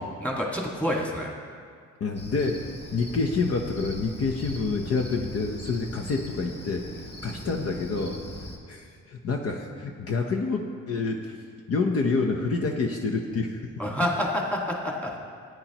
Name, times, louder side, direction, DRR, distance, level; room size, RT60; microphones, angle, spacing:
voice 1, 0.2-1.3 13.8-15.2, left 1 dB, 5° left, -2 dB, 1.8 m, -28 dB
voice 2, 2.0-2.6 2.9-8.2 8.7-11.4 11.7-13.6, left 4 dB, 50° left, 2 dB, 0.9 m, -28 dB
Cricket, 2.1-8.6, equal, 20° left, 1.5 m, -40 dB
14.5 x 9.3 x 3.0 m, 2.1 s
cardioid pair, 90°, 30 cm